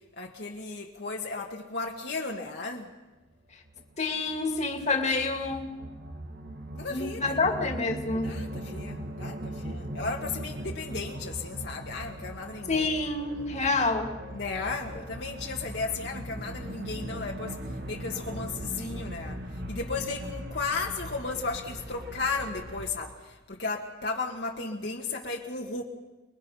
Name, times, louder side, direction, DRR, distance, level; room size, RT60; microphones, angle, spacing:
voice 1, 0.2-2.9 6.7-7.4 8.2-12.8 14.3-17.5 17.9-19.4 19.7-23.2 23.5-25.8, left 3 dB, 55° left, 0 dB, 1.8 m, -34 dB
sound 1, 3.7-22.9, right 1 dB, 50° right, 1.8 m, -39 dB
voice 2, 4.0-5.7 6.9-8.3 12.7-14.2, left 3 dB, 35° left, 4 dB, 2.3 m, -28 dB
30.0 x 21.5 x 5.6 m, 1.2 s
head